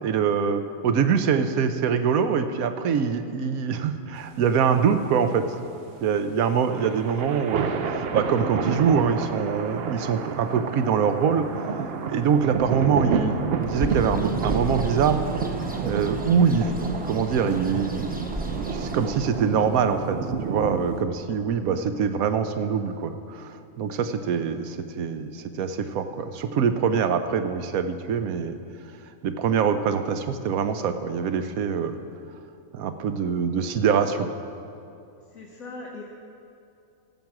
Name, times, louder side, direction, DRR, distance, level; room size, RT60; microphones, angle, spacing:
voice 1, 0.0-5.5 6.0-15.4 15.8-18.1 18.4-20.2 20.5-23.5 23.8-28.6 29.2-31.9 32.7-34.3, right 6 dB, 80° right, 9 dB, 1.1 m, -24 dB
sound 1, 4.2-21.0, right 6 dB, 60° right, 0.7 m, -30 dB
Bird, 13.6-19.5, equal, 10° right, 0.5 m, -34 dB
voice 2, 35.3-36.0, left 3 dB, 80° left, -1 dB, 1.4 m, -39 dB
14.5 x 7.5 x 5.9 m, 2.6 s
omnidirectional pair, 1.5 m